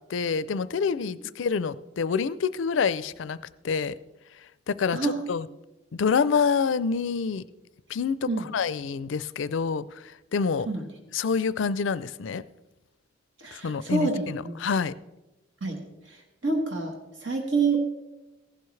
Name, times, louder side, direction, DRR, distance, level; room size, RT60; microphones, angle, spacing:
voice 1, 0.1-3.4 3.6-3.9 4.7-5.5 5.9-7.4 7.9-10.0 10.3-10.7 11.1-12.4 13.5-14.9, left 5 dB, 75° left, 17 dB, 0.4 m, -27 dB
voice 2, 13.4-14.6 15.6-15.8 16.1-16.9 17.2-17.8, right 3 dB, 70° right, 2 dB, 1.4 m, -27 dB
15.0 x 11.5 x 3.2 m, 1.0 s
head